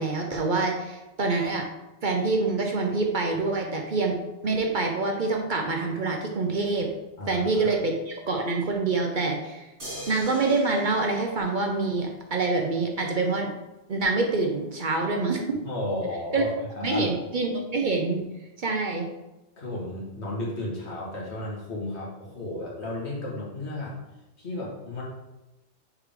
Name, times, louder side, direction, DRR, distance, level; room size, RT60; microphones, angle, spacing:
voice 1, 0.0-1.7 2.0-4.2 4.4-6.9 7.3-9.7 10.1-13.5 13.9-15.6 16.3-16.4 16.8-18.2 18.6-19.1, right 3 dB, 50° right, 2 dB, 0.8 m, -26 dB
voice 2, 7.2-7.7 15.6-17.2 19.6-24.0 24.4-25.0, left 1 dB, 70° left, -4 dB, 2.0 m, -33 dB
sound 1, 9.8-12.3 14.0-14.1, equal, 85° right, 2.9 m, -42 dB
6.6 x 4.8 x 3.7 m, 0.98 s
omnidirectional pair, 1.2 m